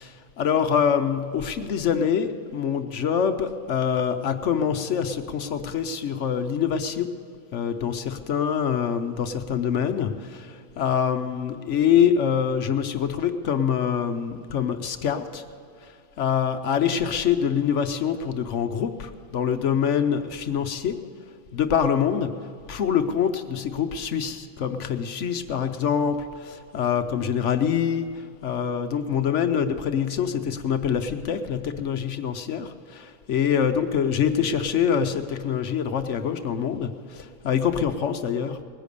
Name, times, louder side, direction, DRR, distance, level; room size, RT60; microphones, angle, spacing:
voice 1, 0.0-7.1 7.5-15.4 15.8-21.0 21.5-38.6, left 8 dB, 60° left, 9 dB, 0.9 m, -25 dB
19.5 x 10.0 x 6.7 m, 2.5 s
omnidirectional pair, 1.6 m